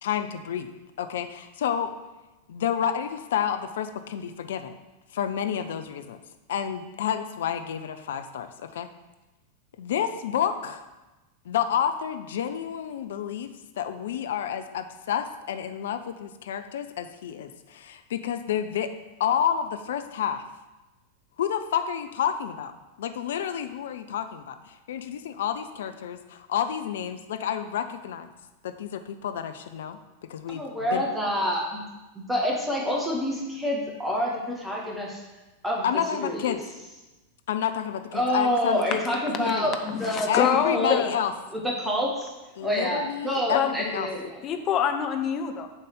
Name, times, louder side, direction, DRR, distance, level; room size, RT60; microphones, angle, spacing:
voice 1, 0.0-0.7 1.0-1.9 2.5-4.7 5.1-6.2 6.5-8.9 9.8-10.8 11.4-18.9 19.2-20.4 21.4-22.7 23.0-28.3 28.6-30.0 30.3-31.0 35.8-36.6 37.5-39.0 39.4-39.7 40.3-41.3 42.6-44.1, left 9 dB, 60° left, 9 dB, 0.6 m, -29 dB
voice 2, 30.5-31.8 32.2-35.2 35.6-35.9 36.1-36.6 38.1-41.0 41.5-42.3 42.6-44.4, equal, 5° right, -2 dB, 1.9 m, -27 dB
voice 3, 39.8-41.1 43.5-43.7 44.4-45.7, left 8 dB, 30° left, 5 dB, 0.8 m, -26 dB
7.1 x 4.1 x 6.6 m, 1.1 s
figure-of-eight pair, 90°, 0 cm